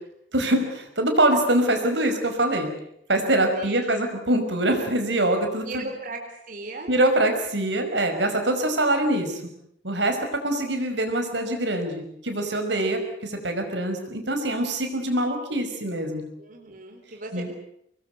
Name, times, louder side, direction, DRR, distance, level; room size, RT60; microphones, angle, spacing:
voice 1, 0.3-2.7 3.1-5.9 6.9-9.4 9.8-10.2 10.4-16.2 17.3-17.5, right 1 dB, 80° right, 5 dB, 5.3 m, -24 dB
voice 2, 3.5-4.0 5.6-6.9 16.4-17.5, right 3 dB, 50° right, 3 dB, 4.0 m, -37 dB
25.5 x 20.5 x 8.0 m, 0.73 s
head